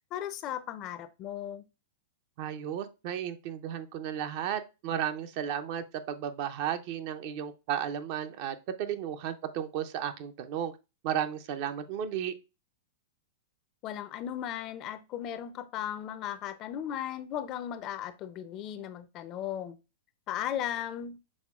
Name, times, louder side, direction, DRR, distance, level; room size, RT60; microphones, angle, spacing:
voice 1, 0.1-1.6 13.8-19.8 20.3-21.2, left 10 dB, 40° left, 13 dB, 0.5 m, -36 dB
voice 2, 2.4-10.7 11.0-12.3, right 9 dB, 50° right, 10 dB, 0.5 m, -34 dB
6.3 x 3.5 x 2.3 m, 0.28 s
hypercardioid pair, 110°, 0 cm